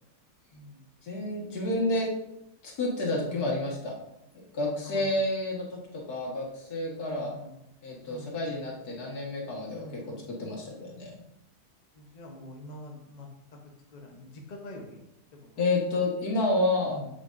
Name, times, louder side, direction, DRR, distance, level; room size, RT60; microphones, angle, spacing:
voice 1, 0.5-0.9 3.3-3.5 4.8-5.2 7.0-7.6 8.0-8.5 9.7-10.3 11.9-13.3 13.9-15.0 15.4-15.6 16.9-17.1, left 1 dB, 30° left, 0 dB, 0.8 m, -44 dB
voice 2, 1.0-2.1 2.6-3.9 4.5-5.8 6.1-7.3 7.8-9.8 10.4-11.1 15.6-17.0, left 2 dB, 70° left, -3 dB, 2.0 m, -29 dB
7.4 x 6.3 x 2.5 m, 0.86 s
omnidirectional pair, 1.7 m